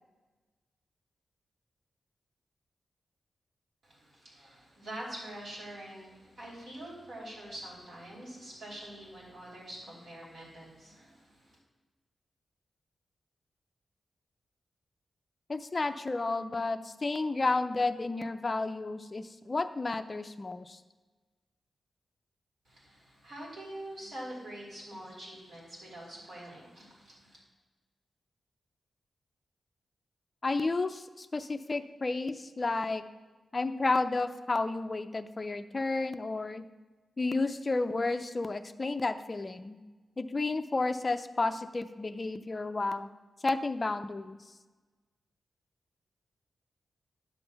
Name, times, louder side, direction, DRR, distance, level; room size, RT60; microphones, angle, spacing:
voice 1, 4.3-11.1 23.2-26.9 27.2-27.3, right 1 dB, 60° right, -4 dB, 2.9 m, -44 dB
voice 2, 15.5-20.8 30.4-33.0 33.5-36.7 37.2-39.8 40.2-43.1 43.4-44.4, left 3 dB, 25° left, 9 dB, 0.4 m, -31 dB
10.0 x 3.7 x 7.0 m, 1.3 s
wide cardioid pair, 170°, 0 cm